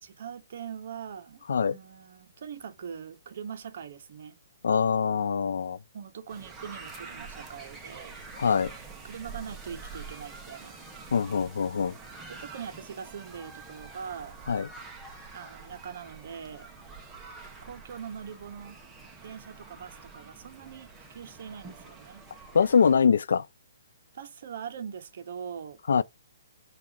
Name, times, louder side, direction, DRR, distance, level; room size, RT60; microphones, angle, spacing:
voice 1, 0.0-4.4 5.9-8.7 9.0-10.8 12.3-14.4 15.3-16.7 17.6-18.8 19.2-22.2 24.1-26.0, right 7 dB, 50° right, 0.8 m, -42 dB
voice 2, 4.6-5.8 8.4-8.7 11.1-11.9 14.5-14.7 22.5-23.4 25.9-26.0, left 6 dB, 75° left, 0.4 m, -23 dB
sound 1, 6.3-23.0, right 4 dB, 10° right, 0.6 m, -46 dB
5.9 x 2.4 x 3.6 m
hypercardioid pair, 170°, 0 cm